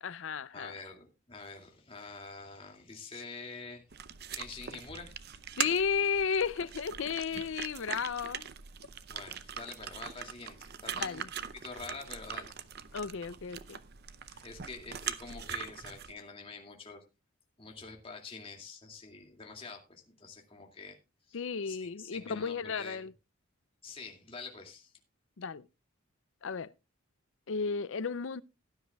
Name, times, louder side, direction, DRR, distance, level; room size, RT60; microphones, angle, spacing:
voice 1, 0.0-0.8 5.6-8.5 11.0-11.3 12.9-13.8 21.3-23.1 25.4-25.7 26.4-26.7 27.5-28.4, left 6 dB, 60° left, 0.5 m, -33 dB
voice 2, 0.5-3.8 4.3-5.2 9.1-11.2 11.6-12.5 14.4-17.0 17.6-21.0 21.3-23.1 23.8-24.9, left 4 dB, 25° left, 2.4 m, -46 dB
sound 1, 3.9-16.1, right 8 dB, 50° right, 0.7 m, -41 dB
18.0 x 10.5 x 2.3 m
head